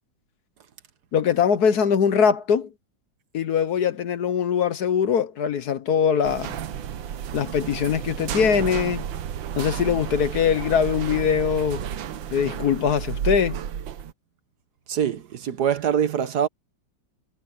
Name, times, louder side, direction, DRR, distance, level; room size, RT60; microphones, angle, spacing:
voice 1, 1.1-2.7 3.3-6.6 7.3-9.1 9.6-11.9 12.3-13.6, left 7 dB, 60° left, 1.4 m, -22 dB
sound 1, 6.2-14.1, right 9 dB, 80° right, 1.7 m, -32 dB
voice 2, 14.9-16.5, right 8 dB, 60° right, 1.5 m, -24 dB
omnidirectional pair, 2.1 m